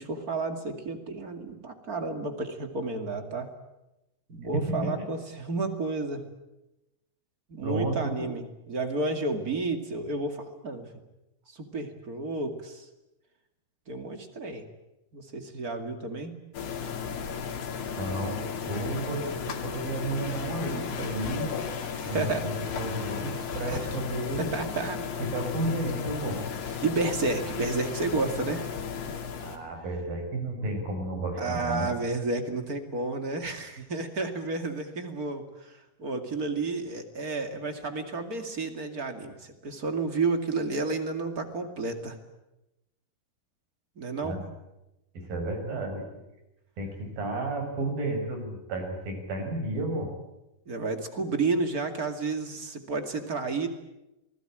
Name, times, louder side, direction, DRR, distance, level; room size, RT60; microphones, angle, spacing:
voice 1, 0.0-3.5 4.3-6.2 7.5-10.9 11.5-12.9 13.9-14.6 15.1-16.3 21.9-22.5 23.2-23.9 24.4-25.0 26.8-28.6 31.4-42.2 44.0-44.4 50.7-53.7, right 3 dB, 30° right, 7 dB, 2.0 m, -31 dB
voice 2, 4.5-4.9 7.6-8.1 17.9-21.5 22.1-24.5 25.2-26.4 29.4-31.9 44.2-44.4 45.1-46.0 46.8-50.1, right 2 dB, 60° right, 4 dB, 7.8 m, -32 dB
sound 1, 16.5-29.6, left 7 dB, 85° left, 4.6 m, -35 dB
27.5 x 20.5 x 8.9 m, 0.94 s
omnidirectional pair, 4.5 m